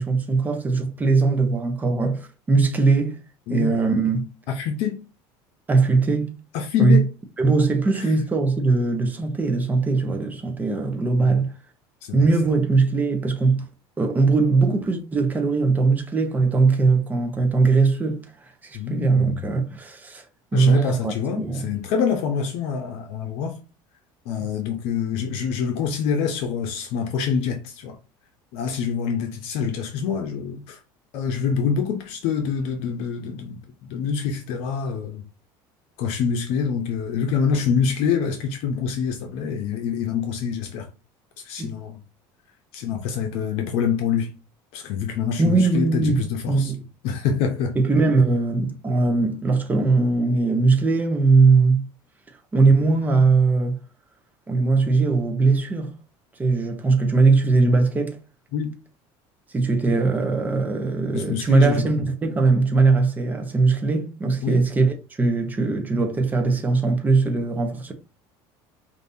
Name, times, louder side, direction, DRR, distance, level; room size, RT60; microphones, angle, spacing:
voice 1, 0.0-3.2 3.5-4.2 5.7-6.4 6.8-7.0 7.4-11.5 12.1-13.6 14.0-18.2 18.6-20.2 20.5-21.6 41.6-41.7 45.4-46.2 46.5-46.8 47.8-51.9 52.5-53.8 54.5-55.9 56.4-58.2 59.5-67.9, right 3 dB, 15° right, 0.8 m, -20 dB
voice 2, 4.6-5.0 6.5-7.1 7.9-8.1 11.2-11.4 12.0-12.2 18.7-19.4 20.5-23.6 24.2-28.0 28.5-30.8 31.1-35.2 36.0-40.9 41.4-42.0 42.7-44.3 44.7-46.7 47.0-47.8 58.5-58.7 59.9-60.0 61.1-62.1 64.4-64.7, left 7 dB, 70° left, 0.7 m, -26 dB
5.2 x 2.7 x 2.7 m
cardioid pair, 140°, 11 cm